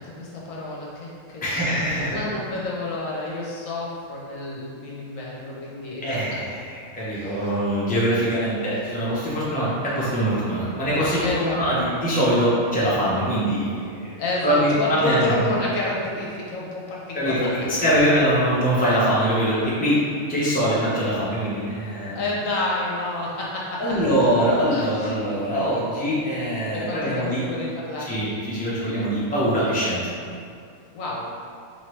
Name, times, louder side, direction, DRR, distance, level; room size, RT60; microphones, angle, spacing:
voice 1, 0.0-6.2 7.1-7.5 11.2-11.6 14.2-17.5 22.1-24.0 24.7-25.1 26.7-28.3 30.9-31.3, left 2 dB, 70° left, -4 dB, 1.1 m, -29 dB
voice 2, 1.4-2.2 6.0-14.1 14.4-15.3 17.1-20.0 20.3-22.2 23.8-27.4 28.0-30.1, equal, 10° left, -9 dB, 0.7 m, -23 dB
4.5 x 2.9 x 3.2 m, 2.4 s
omnidirectional pair, 1.5 m